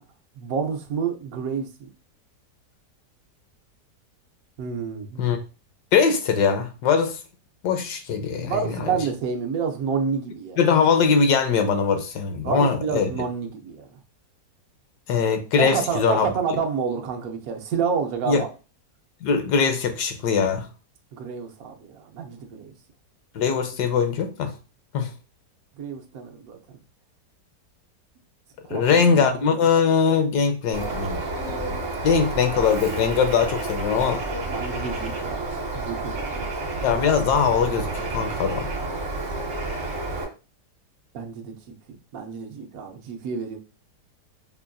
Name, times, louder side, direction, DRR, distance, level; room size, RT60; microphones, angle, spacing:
voice 1, 0.4-1.9 4.6-5.3 8.4-10.6 12.4-14.0 15.6-18.5 21.1-22.7 25.8-26.8 28.6-29.3 34.5-36.5 36.7-36.9 41.1-41.6 41.9-43.6, right 6 dB, 65° right, 1.1 m, -29 dB
voice 2, 5.9-7.2 7.6-9.0 10.6-13.1 15.1-16.3 18.3-18.4 19.2-20.7 23.3-24.5 24.9-25.1 28.7-31.2 32.0-34.2 36.8-38.7, left 6 dB, 80° left, 1.3 m, -21 dB
Bird, 30.7-40.2, right 2 dB, 45° right, 1.4 m, -30 dB
5.7 x 2.5 x 2.2 m
omnidirectional pair, 1.8 m